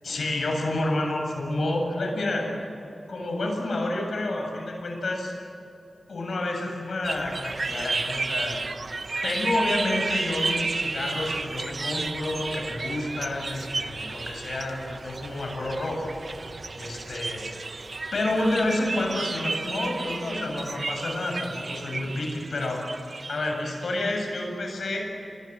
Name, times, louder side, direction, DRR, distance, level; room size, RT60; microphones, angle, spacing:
voice 1, 0.0-2.5 3.1-5.3 6.1-8.6 9.2-16.1 16.8-17.4 18.1-22.9 23.3-25.1, left 2 dB, 80° left, 2 dB, 7.5 m, -29 dB
sound 1, 7.0-24.0, right 3 dB, 55° right, 1.1 m, -32 dB
27.5 x 23.5 x 7.7 m, 2.9 s
wide cardioid pair, 90°, 0 cm